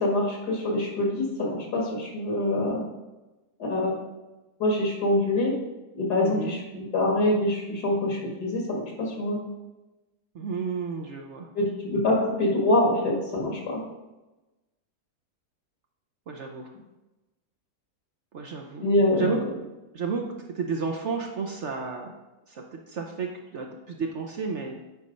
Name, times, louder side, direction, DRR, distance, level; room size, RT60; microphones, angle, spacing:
voice 1, 0.0-2.8 3.6-4.0 4.6-5.5 5.9-9.4 11.6-13.8 18.8-19.5, left 1 dB, 75° left, -1 dB, 2.3 m, -25 dB
voice 2, 6.2-6.6 10.3-11.5 16.3-16.7 18.3-19.4 19.9-22.1 22.5-24.8, right 5 dB, 60° right, 2 dB, 0.8 m, -32 dB
8.4 x 4.2 x 5.2 m, 1.1 s
omnidirectional pair, 1.8 m